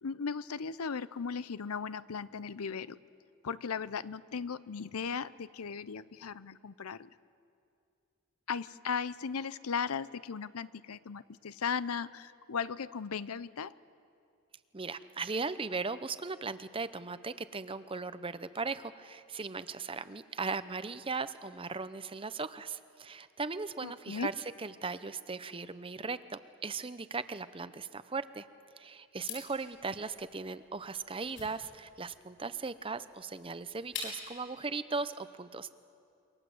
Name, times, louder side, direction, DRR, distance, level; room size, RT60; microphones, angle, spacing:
voice 1, 0.0-3.0 3.4-7.1 8.5-13.7 23.8-24.3, left 6 dB, 85° left, 17 dB, 0.6 m, -37 dB
voice 2, 14.7-28.5 28.8-35.7, right 4 dB, 25° right, 13 dB, 0.7 m, -38 dB
sound 1, 29.2-34.4, left 5 dB, 60° left, 7.4 m, -46 dB
28.0 x 23.5 x 7.9 m, 2.4 s
head